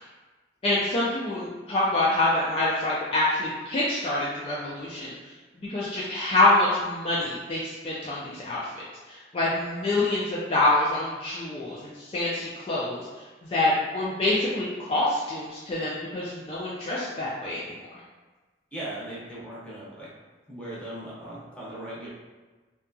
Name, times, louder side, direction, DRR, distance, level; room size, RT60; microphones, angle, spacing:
voice 1, 0.6-8.7 9.1-13.1 13.4-18.0, left 2 dB, 35° left, -7 dB, 0.4 m, -26 dB
voice 2, 18.7-20.1 20.5-22.1, right 1 dB, 5° left, -8 dB, 0.7 m, -38 dB
2.7 x 2.3 x 2.6 m, 1.3 s
head